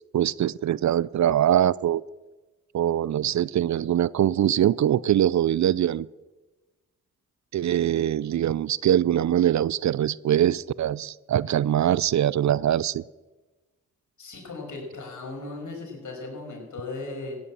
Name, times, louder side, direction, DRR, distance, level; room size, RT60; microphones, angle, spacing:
voice 1, 0.1-2.0 2.7-6.1 7.5-13.0, right 11 dB, 60° right, 22 dB, 0.5 m, -23 dB
voice 2, 14.2-17.4, left 3 dB, 65° left, 0 dB, 5.9 m, -37 dB
15.5 x 9.7 x 7.5 m, 1.2 s
supercardioid pair, 40°, 32 cm